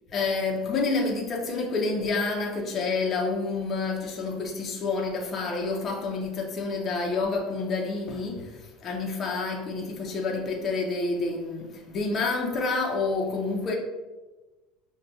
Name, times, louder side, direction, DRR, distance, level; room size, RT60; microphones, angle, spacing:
voice 1, 0.1-13.8, left 3 dB, 30° left, 0.5 m, -28 dB
5.6 x 2.1 x 2.6 m
cardioid pair, 155°, 0 cm